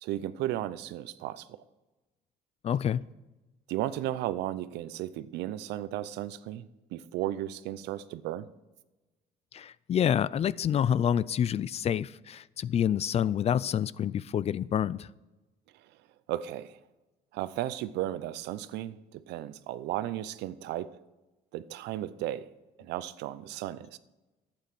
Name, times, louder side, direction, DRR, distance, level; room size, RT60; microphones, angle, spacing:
voice 1, 0.0-1.6 3.7-6.7 6.9-8.5 16.3-16.8 17.3-20.9 21.5-22.5 22.8-24.0, right 13 dB, 85° right, 15 dB, 0.6 m, -34 dB
voice 2, 2.6-3.1 9.5-15.1, left 9 dB, 40° left, 20 dB, 0.4 m, -28 dB
11.5 x 8.8 x 6.1 m, 1.1 s
cardioid pair, 110°, 17 cm